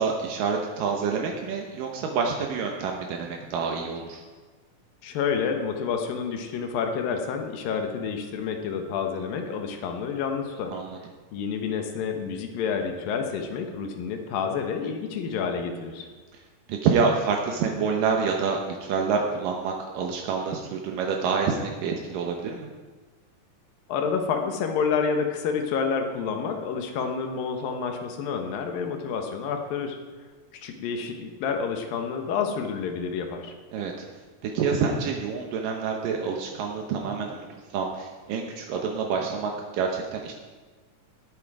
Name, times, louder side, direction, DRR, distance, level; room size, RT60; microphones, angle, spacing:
voice 1, 0.0-4.2 10.7-10.9 16.7-22.7 33.7-34.1 34.4-37.5 37.7-40.3, right 5 dB, 75° right, 1 dB, 2.7 m, -27 dB
voice 2, 5.0-10.8 11.3-16.1 23.9-30.0 30.5-33.5, left 6 dB, 90° left, 4 dB, 3.0 m, -29 dB
18.5 x 9.0 x 4.8 m, 1.4 s
omnidirectional pair, 3.9 m